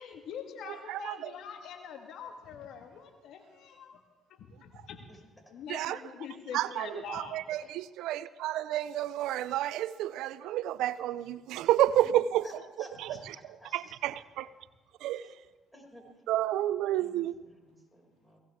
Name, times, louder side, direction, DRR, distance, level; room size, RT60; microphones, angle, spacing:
voice 1, 0.0-4.0 4.4-5.1 5.5-7.4, left 7 dB, 70° left, 4 dB, 1.7 m, -44 dB
voice 2, 0.7-1.3 5.7-6.0 6.5-12.4 13.0-13.2 13.7-14.4 15.0-15.2 16.3-17.3, right 13 dB, 80° right, 17 dB, 0.4 m, -30 dB
voice 3, 12.4-14.0 15.1-15.3 15.7-16.0 16.9-18.4, equal, 5° left, 0 dB, 5.8 m, -53 dB
23.0 x 17.5 x 3.6 m, 1.3 s
supercardioid pair, 65°, 0 cm